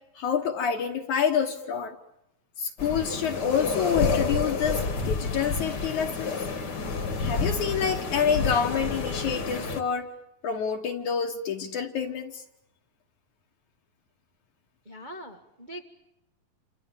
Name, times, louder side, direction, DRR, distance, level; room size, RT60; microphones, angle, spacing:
voice 1, 0.2-2.0 2.6-6.4 7.2-10.1 10.4-12.4, left 7 dB, 65° left, 2 dB, 2.4 m, -27 dB
sound 1, 2.8-9.8, left 4 dB, 35° left, 1.9 m, -29 dB
voice 2, 14.8-15.8, equal, 50° right, 4 dB, 0.5 m, -42 dB
29.0 x 27.5 x 7.3 m, 0.86 s
omnidirectional pair, 4.1 m